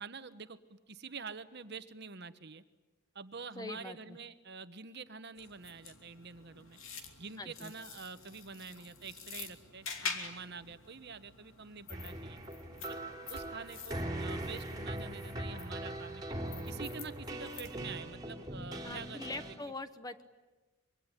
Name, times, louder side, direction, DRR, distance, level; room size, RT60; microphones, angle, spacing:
voice 1, 0.0-2.6 3.1-6.8 7.2-12.4 12.9-13.0 13.3-16.2 16.6-19.2, right 5 dB, 50° right, 11 dB, 1.1 m, -47 dB
voice 2, 3.6-4.2 7.4-7.7 18.8-20.2, left 2 dB, 15° left, 10 dB, 1.0 m, -43 dB
sound 1, 5.4-18.0, left 5 dB, 70° left, 2.8 m, -47 dB
sound 2, 11.9-19.6, right 1 dB, 20° right, 3.3 m, -41 dB
25.5 x 23.5 x 10.0 m, 1.2 s
head